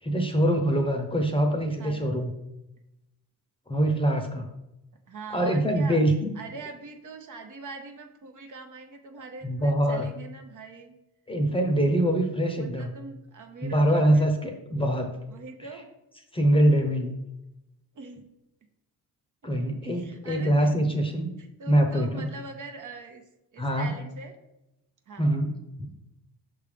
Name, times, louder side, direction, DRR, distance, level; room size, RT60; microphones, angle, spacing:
voice 1, 0.0-2.3 3.7-4.5 5.3-6.3 9.4-10.1 11.3-12.9 13.6-15.1 16.3-17.1 19.4-21.3 21.7-22.3 23.6-23.9 25.2-25.5 25.8-25.9, right 1 dB, 15° left, 3 dB, 0.8 m, -24 dB
voice 2, 1.8-2.1 5.1-6.0 6.4-10.9 12.6-14.3 15.3-15.9 17.9-18.3 19.8-20.7 21.4-23.3 23.5-24.3 25.1-25.3, right 4 dB, 45° right, 5 dB, 0.8 m, -42 dB
5.9 x 3.6 x 5.0 m, 0.92 s
cardioid pair, 95°, 41 cm